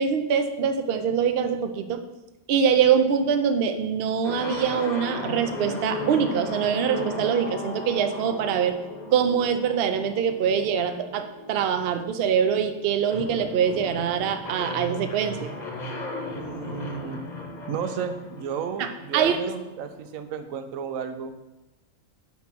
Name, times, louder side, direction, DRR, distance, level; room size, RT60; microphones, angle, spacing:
voice 1, 0.0-2.0 2.5-8.8 9.1-15.5 18.8-18.9 19.1-19.4, right 7 dB, 60° right, 7 dB, 0.7 m, -24 dB
sound 1, 4.2-20.0, left 1 dB, 35° left, 0.9 m, -36 dB
voice 2, 16.3-17.2 17.7-21.3, right 7 dB, 75° right, 9 dB, 1.0 m, -33 dB
5.6 x 4.3 x 6.0 m, 1.0 s
omnidirectional pair, 1.5 m